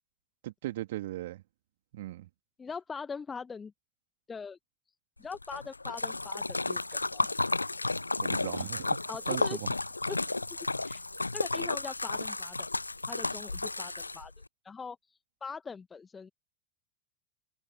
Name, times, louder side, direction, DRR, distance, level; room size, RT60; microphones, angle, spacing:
voice 1, 0.4-1.4 1.9-2.3 8.2-9.0 9.3-9.7, right 15 dB, 55° right, 3.0 m, -38 dB
voice 2, 2.6-3.7 4.3-4.6 5.2-7.3 9.1-9.7 10.0-10.3 10.8-11.0 11.3-12.7 13.1-14.3 14.6-16.3, left 5 dB, 15° left, 1.4 m, -42 dB
Splash splatter, 5.3-14.4, left 2 dB, 80° left, 0.7 m, -32 dB
figure-of-eight pair, 90°, 0 cm